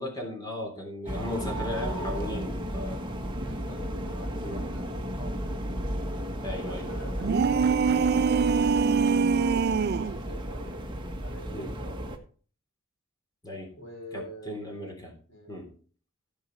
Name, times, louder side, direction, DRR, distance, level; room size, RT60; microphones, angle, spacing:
voice 1, 0.0-3.0 4.4-4.7 6.4-6.9 11.5-11.7 13.4-13.7 14.1-15.1 15.5-15.7, left 1 dB, 20° left, 2 dB, 3.4 m, -36 dB
sound 1, 1.1-12.2, equal, 25° right, 1.4 m, -34 dB
voice 2, 1.6-2.4 3.4-5.5 6.6-10.7 11.2-12.0 13.8-14.6 15.3-15.6, right 1 dB, 60° left, 0 dB, 3.6 m, -45 dB
sound 2, 7.2-10.2, right 5 dB, 50° right, 0.4 m, -23 dB
16.0 x 5.6 x 4.6 m, 0.42 s
head